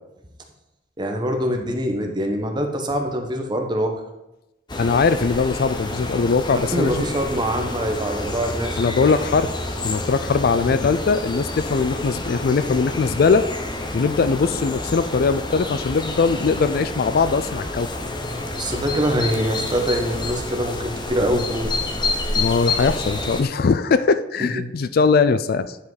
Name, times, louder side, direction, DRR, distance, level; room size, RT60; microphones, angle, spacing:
voice 1, 1.0-3.9 6.7-8.8 10.5-10.8 18.5-21.7 24.5-24.7, equal, 25° right, 3 dB, 1.1 m, -24 dB
sound 1, 4.7-23.4, left 2 dB, 25° left, 0.8 m, -29 dB
voice 2, 4.8-7.0 8.8-9.5 9.8-13.5 13.9-17.9 22.3-25.8, left 4 dB, 55° left, 13 dB, 0.4 m, -20 dB
10.0 x 5.3 x 4.0 m, 0.93 s
head